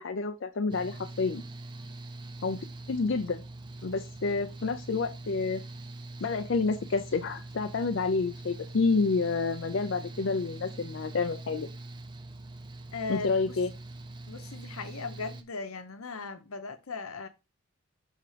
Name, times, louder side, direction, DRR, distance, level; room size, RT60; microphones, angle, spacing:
voice 1, 0.0-1.4 2.4-3.4 3.8-5.6 6.2-11.7 13.1-13.7, left 4 dB, 60° left, 0.4 m, -29 dB
Mechanical fan, 0.7-15.4, right 2 dB, 20° right, 0.5 m, -43 dB
voice 2, 12.9-13.6 14.3-17.3, left 4 dB, 90° left, 0.9 m, -38 dB
5.7 x 3.7 x 4.9 m
head